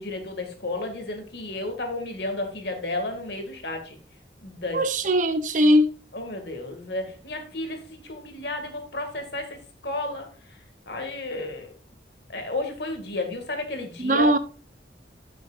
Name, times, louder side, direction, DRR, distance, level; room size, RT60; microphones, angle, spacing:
voice 1, 0.0-4.0 4.4-4.8 6.1-10.3 10.9-11.7 12.3-14.3, left 2 dB, 75° left, 2.0 m, -32 dB
voice 2, 4.7-5.9 14.0-14.4, equal, 45° right, 0.7 m, -20 dB
12.0 x 6.3 x 2.5 m
head